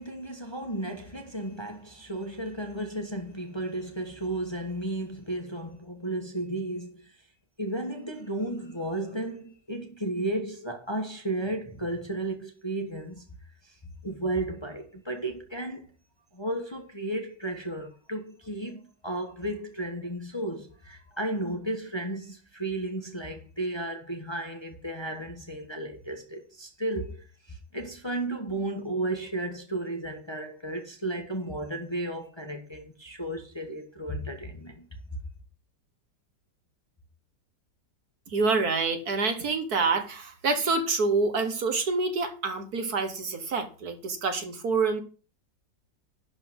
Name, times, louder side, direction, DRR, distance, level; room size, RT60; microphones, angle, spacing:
voice 1, 0.0-7.2 7.6-13.2 13.6-13.8 14.0-15.9 16.3-34.8, right 1 dB, 15° left, 1.3 m, -34 dB
voice 2, 38.3-45.0, right 4 dB, 55° right, 1.9 m, -27 dB
11.5 x 4.1 x 7.8 m
omnidirectional pair, 1.9 m